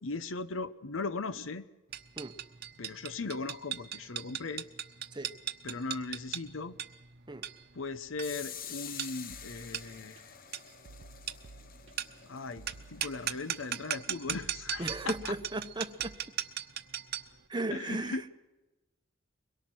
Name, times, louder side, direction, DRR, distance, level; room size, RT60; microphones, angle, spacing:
voice 1, 0.0-1.7 2.8-4.7 5.6-6.8 7.7-10.2 12.3-15.3 17.7-18.2, left 3 dB, 85° left, 0.9 m, -38 dB
sound 1, 1.9-17.4, right 10 dB, 55° right, 0.9 m, -39 dB
sound 2, 8.2-13.9, left 8 dB, 45° left, 0.9 m, -47 dB
sound 3, 9.3-10.2 10.9-12.2 12.6-13.6 14.3-16.2, right 2 dB, 75° right, 0.6 m, -53 dB
voice 2, 14.8-16.2 17.5-18.3, right 2 dB, 25° right, 0.8 m, -36 dB
23.0 x 22.0 x 6.2 m
head